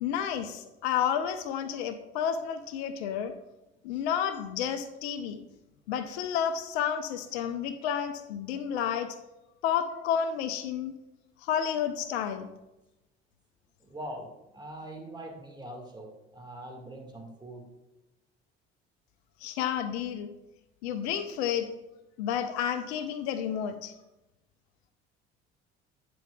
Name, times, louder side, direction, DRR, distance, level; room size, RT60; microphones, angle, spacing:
voice 1, 0.0-3.3 3.8-5.4 5.9-9.1 9.6-10.9 11.4-12.5 19.4-20.3 20.8-21.7 22.2-23.9, left 8 dB, 70° left, 9 dB, 0.6 m, -31 dB
voice 2, 13.8-16.1 16.3-17.7, right 1 dB, 15° right, 1 dB, 1.8 m, -42 dB
9.1 x 6.1 x 2.3 m, 0.97 s
figure-of-eight pair, 55°, 33 cm